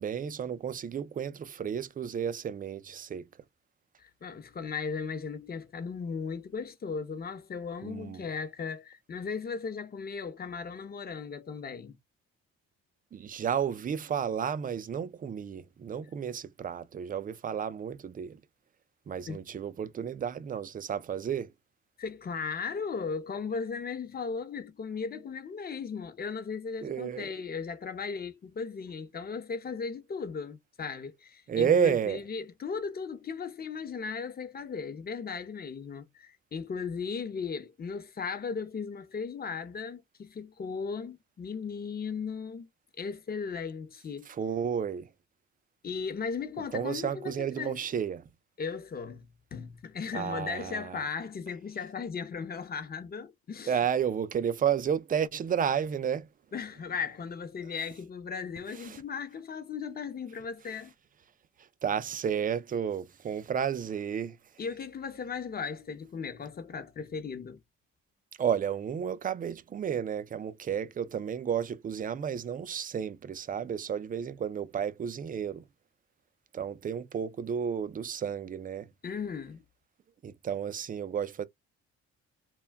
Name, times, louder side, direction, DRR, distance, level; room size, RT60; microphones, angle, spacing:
voice 1, 0.0-3.2 7.8-8.2 13.1-18.4 19.1-21.5 26.8-27.3 31.5-32.2 44.3-45.1 46.7-48.2 50.1-51.0 53.7-56.3 58.7-59.0 61.8-64.4 68.4-75.6 76.5-78.9 80.2-81.4, right 8 dB, 30° right, 0.3 m, -32 dB
voice 2, 4.0-12.0 19.3-19.4 22.0-42.7 43.0-44.3 45.8-47.8 48.6-53.7 56.5-60.9 64.6-67.6 79.0-79.6, left 5 dB, 30° left, 0.6 m, -37 dB
2.2 x 2.1 x 3.3 m
cardioid pair, 90°, 30 cm